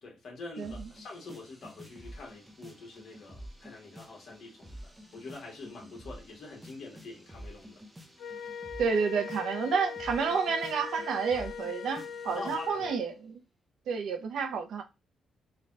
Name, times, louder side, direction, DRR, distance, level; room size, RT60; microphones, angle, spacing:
voice 1, 0.0-7.8 12.3-12.9, left 3 dB, 50° left, 1.4 m, -45 dB
sound 1, 0.6-12.8, equal, 10° right, 0.6 m, -50 dB
Wind instrument woodwind instrument, 8.2-13.0, left 6 dB, 65° left, 0.4 m, -40 dB
voice 2, 8.8-13.4 13.9-14.8, right 5 dB, 70° right, 0.6 m, -30 dB
3.3 x 2.3 x 3.8 m
cardioid pair, 160°, 0 cm